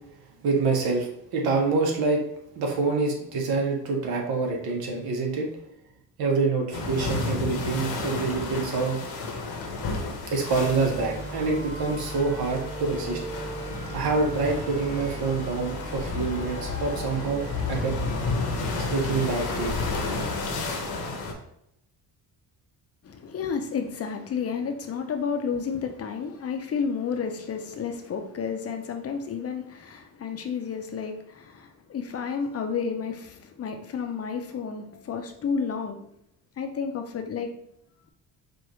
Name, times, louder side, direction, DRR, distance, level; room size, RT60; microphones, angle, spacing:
voice 1, 0.4-1.1 1.3-2.2 2.6-5.5 6.2-9.0 10.3-13.2 13.9-17.9 18.9-19.7, right 4 dB, 70° right, 1 dB, 1.2 m, -26 dB
sound 1, 6.7-21.3, left 3 dB, 65° left, 1.0 m, -32 dB
sound 2, 10.5-19.9, right 1 dB, 20° right, 1.3 m, -38 dB
voice 2, 23.0-36.0 36.6-37.5, left 6 dB, 40° left, 5 dB, 0.7 m, -31 dB
4.9 x 2.6 x 3.0 m, 0.76 s
cardioid pair, 100°, 39 cm